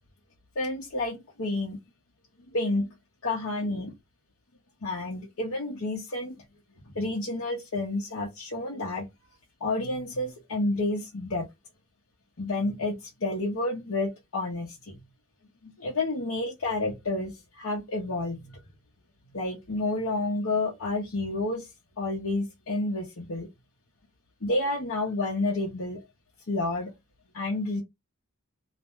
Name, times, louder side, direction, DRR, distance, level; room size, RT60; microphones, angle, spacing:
voice 1, 0.6-1.8 2.5-2.9 3.2-3.9 4.8-6.4 7.0-9.0 9.6-11.4 12.4-15.0 15.6-17.3 17.6-18.6 19.3-21.6 22.0-23.5 24.4-26.0 26.5-26.9 27.3-27.8, left 2 dB, 65° left, 0.8 m, -30 dB
2.5 x 2.2 x 2.9 m
head